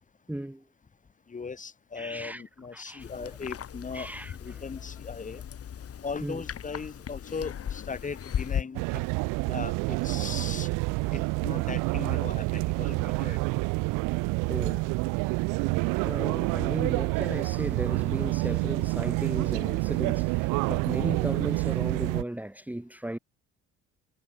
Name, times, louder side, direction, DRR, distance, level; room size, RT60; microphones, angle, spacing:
voice 1, 0.3-0.6 2.0-2.4 2.7-3.3 3.9-4.6 6.2-6.4 14.5-14.9 16.0-23.2, right 1 dB, 5° right, 2.2 m, -36 dB
voice 2, 1.3-4.1 4.4-5.4 6.0-9.0 9.5-10.7 11.1-13.4, left 5 dB, 25° left, 1.2 m, -38 dB
sound 1, 3.0-8.6, left 9 dB, 50° left, 3.0 m, -37 dB
sound 2, 8.7-22.2, right 27 dB, 85° right, 0.6 m, -28 dB
supercardioid pair, 85°, 31 cm